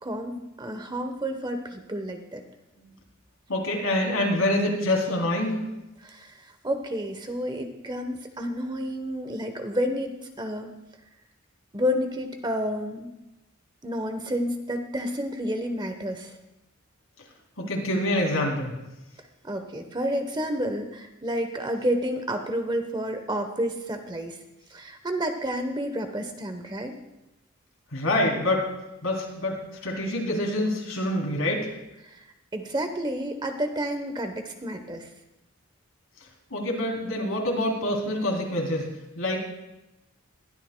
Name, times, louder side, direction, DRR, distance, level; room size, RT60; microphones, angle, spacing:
voice 1, 0.0-2.4 6.0-10.8 11.7-13.1 13.8-16.4 19.4-24.4 24.7-26.9 32.0-32.3 32.5-35.1, equal, 20° right, 6 dB, 1.0 m, -30 dB
voice 2, 3.5-5.6 17.6-18.7 27.9-28.6 29.0-29.6 29.8-31.7 36.5-38.9 39.1-39.4, left 1 dB, 75° left, 0 dB, 3.3 m, -26 dB
21.0 x 12.5 x 2.3 m, 0.94 s
head